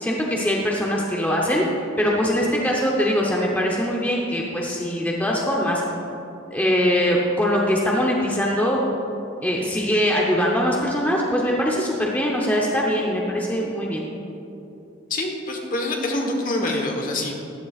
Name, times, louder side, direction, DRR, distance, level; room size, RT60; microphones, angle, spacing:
voice 1, 0.0-1.7 2.0-5.8 6.5-8.8 9.4-14.0, equal, 10° left, -2 dB, 0.8 m, -22 dB
voice 2, 15.1-17.5, left 2 dB, 40° left, 1 dB, 1.3 m, -26 dB
14.0 x 11.5 x 2.5 m, 2.8 s
head